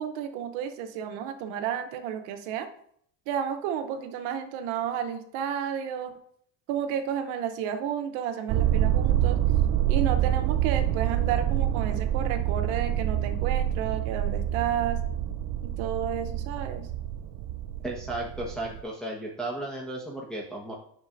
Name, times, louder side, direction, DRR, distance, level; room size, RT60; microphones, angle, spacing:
voice 1, 0.0-2.7 3.3-6.1 6.7-9.4 9.9-15.0 15.6-16.9, right 8 dB, 90° right, 7 dB, 0.9 m, -31 dB
sound 1, 8.5-18.8, right 11 dB, 60° right, 0.5 m, -27 dB
voice 2, 17.8-20.7, right 1 dB, ahead, -4 dB, 1.2 m, -34 dB
8.3 x 6.2 x 2.5 m, 0.66 s
supercardioid pair, 80°, 47 cm